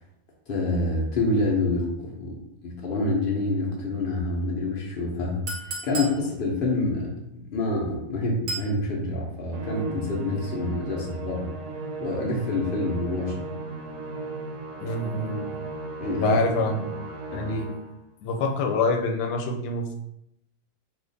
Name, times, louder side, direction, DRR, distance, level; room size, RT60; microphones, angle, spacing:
voice 1, 0.5-2.4 2.6-11.5 12.0-13.5 16.0-16.4 17.3-17.4, left 2 dB, 65° left, -2 dB, 0.5 m, -27 dB
Chink clink, 5.5-6.2 8.5-8.7, right 2 dB, 55° right, 0.7 m, -32 dB
Musical instrument, 9.5-18.0, right 3 dB, 75° right, 1.1 m, -36 dB
voice 2, 14.8-15.5 16.2-17.0 17.3-17.7 18.2-20.0, left 3 dB, 85° left, 3 dB, 1.2 m, -26 dB
2.8 x 2.4 x 3.8 m, 0.80 s
omnidirectional pair, 1.8 m